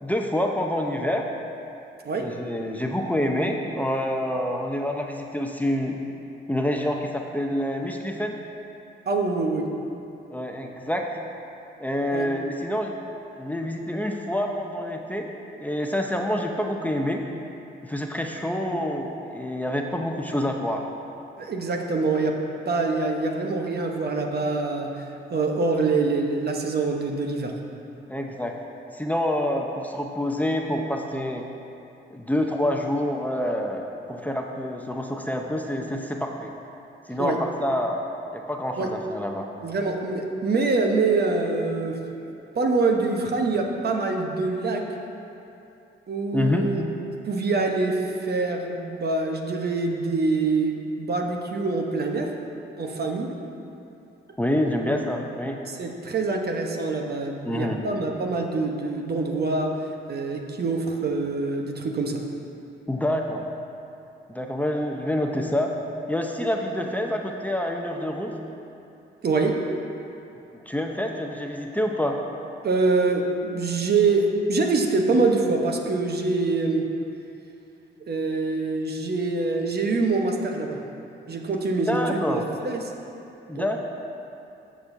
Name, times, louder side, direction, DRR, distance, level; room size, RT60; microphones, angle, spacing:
voice 1, 0.0-1.3 2.2-6.0 6.5-8.4 10.3-11.1 11.8-12.9 13.4-15.3 15.6-17.2 17.8-20.8 28.1-28.5 28.9-31.5 32.1-36.5 37.1-38.0 38.3-39.4 46.3-46.7 54.4-55.6 57.4-57.8 62.9-63.4 64.3-65.7 66.1-68.3 70.7-72.2 81.9-82.4 83.5-83.8, left 1 dB, 5° left, 1 dB, 0.7 m, -27 dB
voice 2, 9.1-9.7 12.1-12.3 21.4-22.4 22.7-27.5 37.2-37.4 38.8-38.9 39.6-44.8 46.1-46.9 47.2-52.3 52.8-53.3 55.7-59.7 60.1-62.2 69.2-69.6 72.6-76.8 78.1-80.8 81.3-82.8 83.5-83.8, right 3 dB, 50° right, 2 dB, 1.0 m, -25 dB
14.5 x 6.3 x 2.7 m, 2.8 s
supercardioid pair, 60°, 21 cm